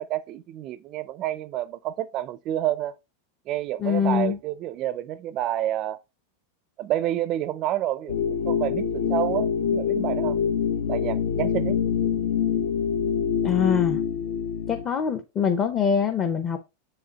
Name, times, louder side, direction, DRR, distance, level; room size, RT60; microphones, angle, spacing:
voice 1, 0.0-2.9 3.5-6.0 6.8-10.4 10.9-11.8, right 12 dB, 35° right, 0.4 m, -29 dB
voice 2, 3.8-4.4 13.4-14.0 14.7-16.6, left 7 dB, 25° left, 0.6 m, -23 dB
sound 1, 8.1-14.8, left 7 dB, 70° left, 0.8 m, -25 dB
6.7 x 4.9 x 2.9 m
supercardioid pair, 140°, 0 cm